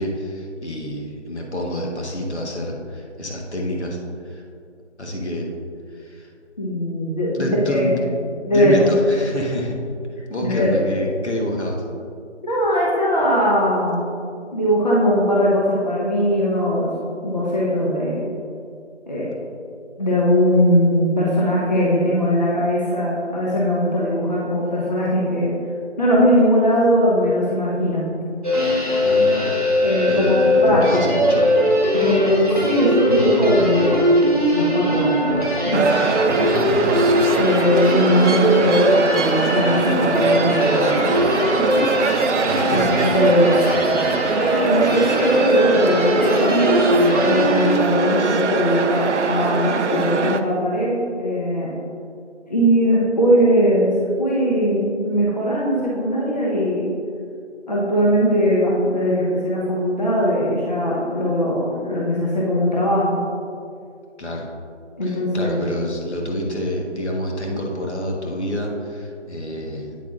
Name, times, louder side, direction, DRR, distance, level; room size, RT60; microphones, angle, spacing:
voice 1, 0.0-4.0 4.2-4.4 5.0-5.5 5.9-6.3 7.3-8.1 8.5-9.8 10.3-11.8 29.0-29.6 30.1-31.4 36.4-37.0 42.5-43.1 43.6-44.1 64.2-64.5 65.0-70.0, left 1 dB, 65° left, 0 dB, 1.4 m, -28 dB
voice 2, 6.6-7.9 8.4-8.8 10.4-10.8 12.4-14.0 14.5-16.9 17.2-18.3 19.1-19.3 20.0-25.5 26.0-28.0 29.8-31.2 32.0-34.3 34.5-35.3 35.7-35.9 37.4-41.3 41.6-41.9 42.3-43.6 44.6-51.7 52.5-53.9 54.2-56.8 57.7-63.2 65.0-65.6, equal, 35° left, -6 dB, 1.0 m, -20 dB
sound 1, 28.4-47.7, equal, 30° right, 1.2 m, -20 dB
sound 2, 35.7-50.4, right 4 dB, 75° right, 0.6 m, -22 dB
8.5 x 8.1 x 2.5 m, 2.4 s
figure-of-eight pair, 175°, 36 cm